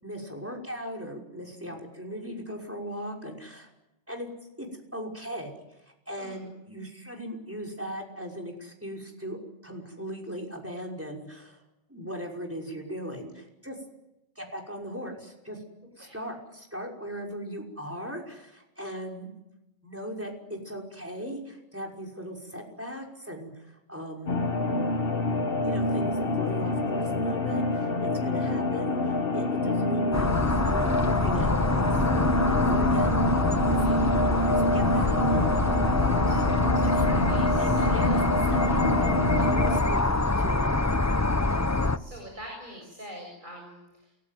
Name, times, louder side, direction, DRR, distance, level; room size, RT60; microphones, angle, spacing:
voice 1, 0.0-3.7 4.1-4.3 4.6-5.5 5.8-11.6 11.9-13.8 14.4-15.6 16.0-19.3 19.8-24.4 25.6-33.8 34.4-36.3 36.8-37.1 37.6-40.8, equal, 10° right, 1 dB, 5.7 m, -38 dB
sound 1, 24.3-39.8, left 2 dB, 55° left, 1.8 m, -26 dB
sound 2, 30.1-42.0, left 2 dB, 15° left, 0.8 m, -26 dB
voice 2, 36.7-38.1 41.3-41.6 41.9-44.2, equal, 45° right, 1 dB, 7.5 m, -44 dB
28.5 x 20.0 x 9.4 m, 0.92 s
omnidirectional pair, 1.2 m